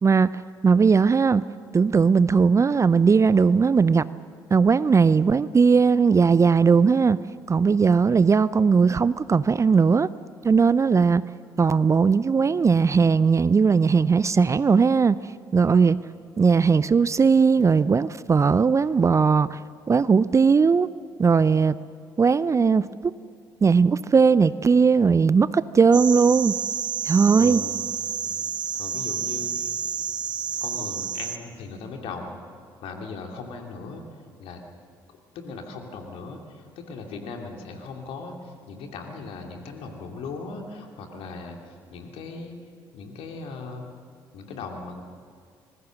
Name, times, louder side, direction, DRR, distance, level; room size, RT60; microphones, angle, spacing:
voice 1, 0.0-1.5 1.7-4.1 4.5-7.2 7.5-10.1 10.4-11.3 11.6-15.2 15.5-16.0 16.4-19.6 19.9-20.9 21.2-21.8 22.2-23.1 23.6-26.6 27.1-27.6, right 5 dB, 30° right, 18 dB, 0.5 m, -18 dB
sound 1, 25.9-31.4, right 7 dB, 45° right, 1.1 m, -29 dB
voice 2, 27.4-27.9 28.8-29.7 30.6-32.4 32.8-34.0 34.4-34.6 35.3-42.6 42.9-43.9 44.3-45.0, left 4 dB, 60° left, 3 dB, 2.7 m, -38 dB
25.5 x 20.5 x 6.4 m, 2.3 s
figure-of-eight pair, 50°, 11 cm